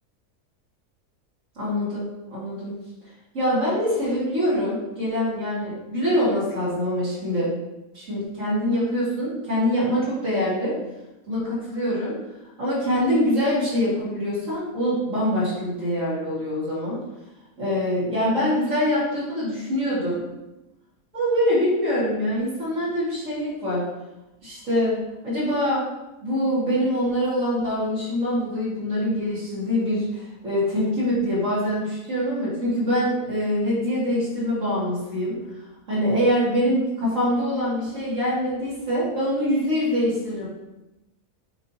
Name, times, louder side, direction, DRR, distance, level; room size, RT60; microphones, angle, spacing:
voice 1, 1.6-2.8 3.3-7.5 7.9-10.8 11.3-12.2 12.6-17.0 17.6-20.2 21.1-23.8 24.4-25.0 25.2-25.8 26.2-35.4 35.9-40.5, equal, 55° right, -10 dB, 2.7 m, -24 dB
8.6 x 4.3 x 2.8 m, 0.99 s
omnidirectional pair, 1.6 m